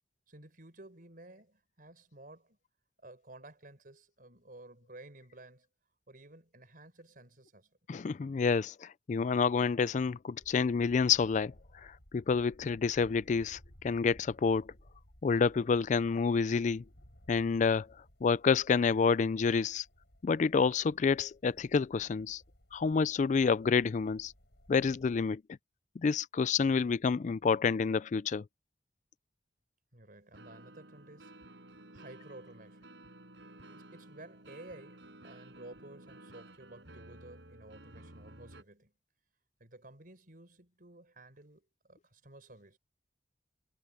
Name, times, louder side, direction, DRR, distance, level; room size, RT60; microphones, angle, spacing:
voice 1, 0.3-2.6 3.0-5.7 6.1-7.8 29.9-33.0 33.6-38.9 39.6-42.8, right 2 dB, 50° right, 4.7 m, -53 dB
voice 2, 7.9-11.5 11.8-13.6 13.8-14.7 15.2-16.8 17.3-17.9 18.2-19.8 20.2-22.4 22.7-24.3 24.7-25.4 26.0-28.4, left 5 dB, 45° left, 0.4 m, -28 dB
sound 1, 10.4-25.3, equal, 65° left, 6.3 m, -60 dB
sound 2, 27.4-27.7 30.3-38.6, right 1 dB, 80° right, 6.2 m, -54 dB
head